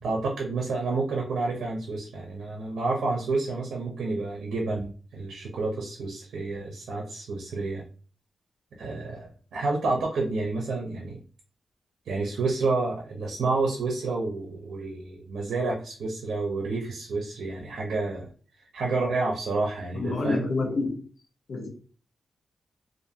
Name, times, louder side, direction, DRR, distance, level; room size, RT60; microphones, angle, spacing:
voice 1, 0.0-7.8 8.8-11.2 12.1-18.2 18.6-20.4, right 3 dB, 85° right, 0.6 m, -29 dB
voice 2, 19.9-21.0 21.5-21.7, left 3 dB, 65° left, 0.8 m, -28 dB
2.5 x 2.5 x 2.7 m
cardioid pair, 90°, 0 cm